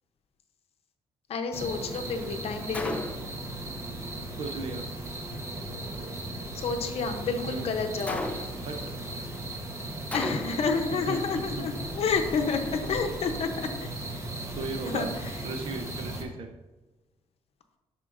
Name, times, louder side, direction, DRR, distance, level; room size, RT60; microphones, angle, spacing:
voice 1, 1.3-3.1 6.5-8.3 10.1-14.2 14.9-15.3, left 5 dB, 65° left, 5 dB, 0.7 m, -30 dB
sound 1, 1.5-16.2, right 1 dB, 25° right, 1.0 m, -37 dB
Gunshot gunfire, 2.7-3.4 8.1-8.7 10.1-10.8, left 1 dB, 10° left, 0.5 m, -34 dB
voice 2, 4.4-4.8 7.5-7.7 8.6-8.8 11.1-11.7 11.9-12.0 14.5-15.2 15.4-16.5, right 4 dB, 55° right, 4 dB, 0.6 m, -36 dB
11.0 x 4.4 x 2.5 m, 1.1 s
cardioid pair, 110°, 11 cm